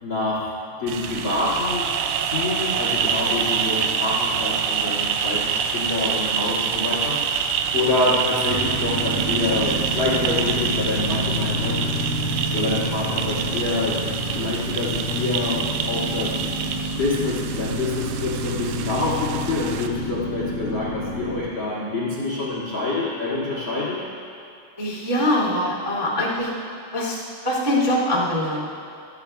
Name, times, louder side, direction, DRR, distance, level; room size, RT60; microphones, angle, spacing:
voice 1, 0.0-0.5 0.8-1.9 2.2-11.8 12.5-14.0 14.3-16.4 17.0-24.0, left 2 dB, 60° left, -7 dB, 1.2 m, -26 dB
sound 1, 0.9-19.9, right 7 dB, 80° right, 2.9 m, -26 dB
sound 2, 8.4-21.4, equal, 60° right, 3.8 m, -29 dB
voice 2, 24.8-26.5 26.9-28.7, left 1 dB, 30° right, -6 dB, 0.5 m, -23 dB
27.0 x 10.5 x 2.3 m, 2.5 s
omnidirectional pair, 5.6 m